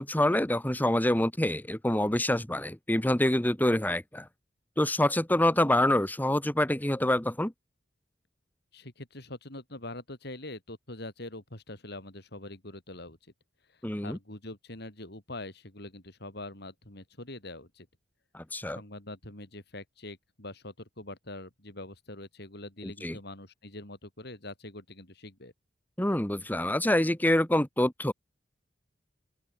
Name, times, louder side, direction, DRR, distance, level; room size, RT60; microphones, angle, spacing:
voice 1, 0.0-4.3 4.8-7.5 13.8-14.2 18.3-18.8 22.8-23.2 26.0-28.1, left 1 dB, 10° left, 1.3 m, -26 dB
voice 2, 8.7-13.2 13.7-17.9 18.7-25.5, left 2 dB, 65° left, 6.0 m, -44 dB
open air
head